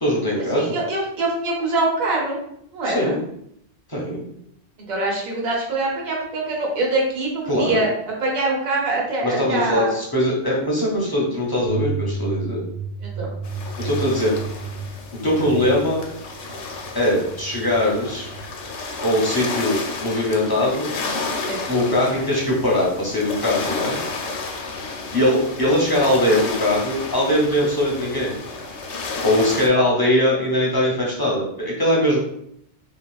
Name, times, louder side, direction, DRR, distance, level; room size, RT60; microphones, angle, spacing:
voice 1, 0.0-0.8 2.8-3.2 3.9-4.2 7.5-7.8 9.2-12.6 13.8-14.3 15.2-16.0 16.9-18.3 19.0-20.9 21.7-24.0 25.1-28.4 29.2-32.2, left 1 dB, 25° left, -4 dB, 0.5 m, -21 dB
voice 2, 0.5-2.4 2.7-3.1 4.9-7.9 8.2-9.9 13.0-13.3 21.4-21.6, right 2 dB, 45° right, -2 dB, 0.8 m, -24 dB
sound 1, 11.6-18.5, right 5 dB, 80° right, 1.9 m, -32 dB
sound 2, 13.4-29.7, left 3 dB, 85° left, 0.9 m, -32 dB
3.4 x 2.4 x 2.3 m, 0.71 s
omnidirectional pair, 1.3 m